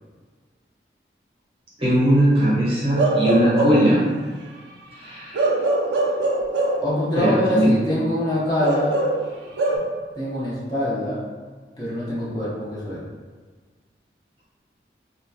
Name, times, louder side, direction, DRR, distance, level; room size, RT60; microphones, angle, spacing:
voice 1, 1.8-4.0 5.0-5.5 7.2-7.7, equal, 30° right, -7 dB, 0.7 m, -19 dB
Bark / Livestock farm animals working animals, 3.0-4.0 5.3-6.9 8.6-9.8, right 2 dB, 85° right, 0.4 m, -22 dB
voice 2, 6.8-9.0 10.2-11.2 11.8-13.0, left 1 dB, 25° left, -9 dB, 0.6 m, -24 dB
2.7 x 2.2 x 2.3 m, 1.5 s
head